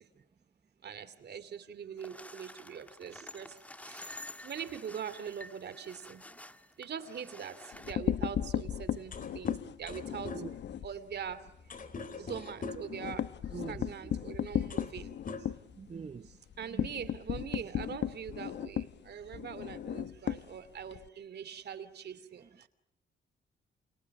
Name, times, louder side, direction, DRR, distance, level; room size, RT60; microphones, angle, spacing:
voice 1, 0.8-3.5 3.8-6.2 6.8-10.4 10.8-11.4 12.2-13.3 13.7-15.1 16.6-22.4, right 8 dB, 55° right, 2.8 m, -42 dB
sound 1, 2.0-7.9, left 1 dB, 5° left, 1.8 m, -49 dB
sound 2, 7.7-10.9 11.3-11.5 11.8-11.9 12.2-21.1, left 10 dB, 60° left, 1.0 m, -35 dB
sound 3, 9.1-13.0 14.0-14.2 14.5-15.0 15.2-16.1, left 4 dB, 40° left, 3.7 m, -43 dB
voice 2, 13.5-14.1 15.7-16.3 16.7-16.9 22.4-22.7, right 5 dB, 30° right, 0.9 m, -44 dB
29.5 x 28.5 x 6.1 m
cardioid pair, 90°, 20 cm